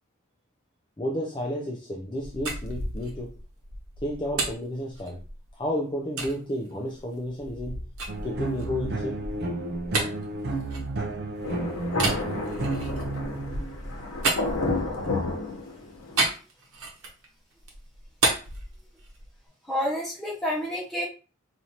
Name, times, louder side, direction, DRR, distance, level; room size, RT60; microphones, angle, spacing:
voice 1, 1.0-3.3 4.0-5.2 5.5-7.8 8.2-9.2, left 1 dB, 20° left, 0.4 m, -31 dB
sound 1, 2.0-5.5 6.2-6.3 6.9-11.3 11.9-15.1 16.2-17.3 17.6-19.4, right 3 dB, 90° right, 0.9 m, -32 dB
sound 2, 8.1-14.0, right 2 dB, 50° right, 0.4 m, -32 dB
Thunder, 11.4-16.2, left 2 dB, 85° left, 0.9 m, -31 dB
voice 2, 19.7-21.1, equal, ahead, 0.8 m, -29 dB
4.3 x 2.5 x 2.8 m
head